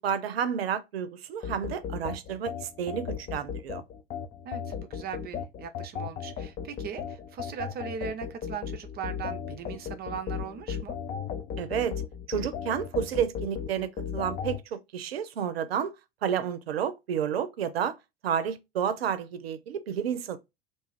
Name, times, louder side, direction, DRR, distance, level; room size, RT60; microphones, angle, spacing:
voice 1, 0.0-3.8 11.6-11.9 12.3-16.0 16.2-17.9 18.2-20.4, right 8 dB, 80° right, 0.5 m, -30 dB
sound 1, 1.4-14.6, left 7 dB, 30° left, 0.5 m, -36 dB
voice 2, 4.4-11.0, right 7 dB, 30° right, 0.5 m, -39 dB
2.7 x 2.3 x 3.1 m
figure-of-eight pair, 75°, 30 cm